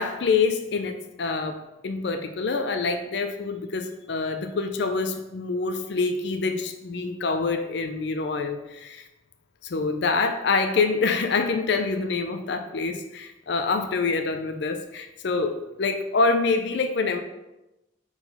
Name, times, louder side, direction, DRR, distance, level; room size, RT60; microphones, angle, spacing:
voice 1, 0.0-9.1 9.6-17.2, left 4 dB, 65° left, 7 dB, 0.5 m, -26 dB
4.8 x 3.9 x 5.3 m, 0.95 s
head